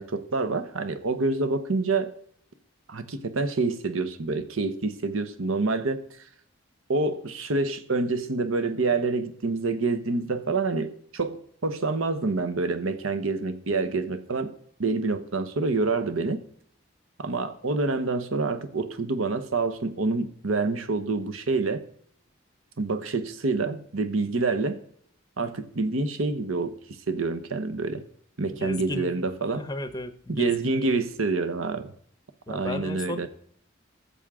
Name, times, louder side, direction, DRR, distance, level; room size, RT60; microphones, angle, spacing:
voice 1, 0.0-2.1 2.9-6.0 6.9-14.5 14.8-16.4 17.2-21.8 22.8-24.8 25.4-26.8 27.1-28.0 28.4-29.7 30.3-31.9 32.5-33.3, right 3 dB, 85° right, 10 dB, 0.9 m, -27 dB
voice 2, 28.5-29.1 29.5-31.0 32.5-33.3, left 1 dB, 20° left, 11 dB, 0.6 m, -34 dB
13.5 x 7.1 x 3.6 m, 0.65 s
head